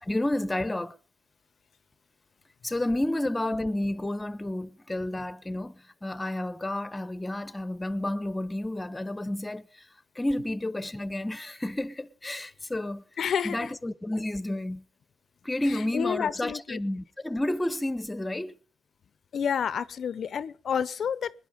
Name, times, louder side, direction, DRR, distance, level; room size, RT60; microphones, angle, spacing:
voice 1, 0.0-0.9 2.6-9.9 10.1-13.0 13.4-14.8 15.4-18.6, left 1 dB, 15° left, 1.0 m, -31 dB
voice 2, 13.2-13.7 15.6-16.8 19.3-21.3, left 7 dB, 55° left, 0.7 m, -30 dB
20.5 x 11.0 x 5.2 m
cardioid pair, 90°, 0 cm